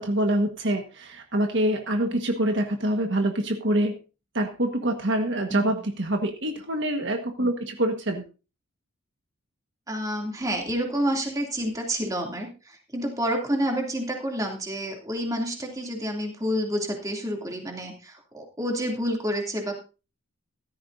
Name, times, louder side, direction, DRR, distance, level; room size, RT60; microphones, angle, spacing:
voice 1, 0.0-4.0 4.3-8.2, right 1 dB, 55° right, 4 dB, 1.5 m, -25 dB
voice 2, 9.9-19.8, equal, 15° right, 1 dB, 2.7 m, -29 dB
16.0 x 13.0 x 2.7 m, 0.32 s
head